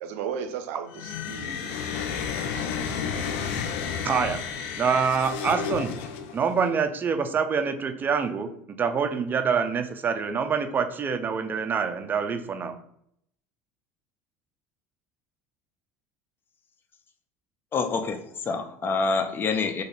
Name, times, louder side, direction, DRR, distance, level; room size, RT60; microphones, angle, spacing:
voice 1, 0.0-2.0, right 7 dB, 85° right, 8 dB, 0.5 m, -35 dB
sound 1, 0.9-6.6, left 6 dB, 85° left, 0.4 m, -31 dB
voice 2, 4.0-4.4 4.8-6.0 6.3-12.7, right 6 dB, 25° right, 7 dB, 0.4 m, -26 dB
voice 3, 17.7-19.8, left 4 dB, 30° left, 7 dB, 0.5 m, -27 dB
2.9 x 2.6 x 3.9 m, 0.71 s
supercardioid pair, 110°, 7 cm